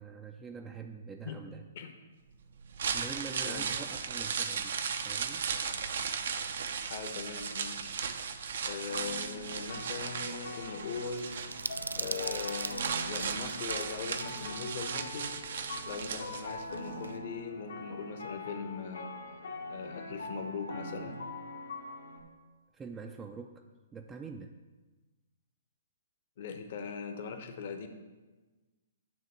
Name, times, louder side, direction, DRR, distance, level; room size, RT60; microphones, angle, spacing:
voice 1, 0.0-1.6 2.9-5.5 22.7-23.6 23.9-24.5, right 5 dB, 15° right, 4 dB, 0.4 m, -45 dB
sound 1, 2.6-16.8 17.1-17.2, right 6 dB, 60° right, 0.6 m, -36 dB
voice 2, 6.9-8.0 8.6-11.3 11.9-15.3 15.9-19.1 19.7-21.2 26.4-27.9, left 5 dB, 50° left, 6 dB, 1.0 m, -40 dB
sound 2, 8.9-22.2, left 2 dB, 75° left, 1.4 m, -43 dB
sound 3, 11.2-14.4 14.7-14.8 15.8-17.2, right 3 dB, 85° right, 0.3 m, -40 dB
9.2 x 3.6 x 7.0 m, 1.2 s
figure-of-eight pair, 125°, 0 cm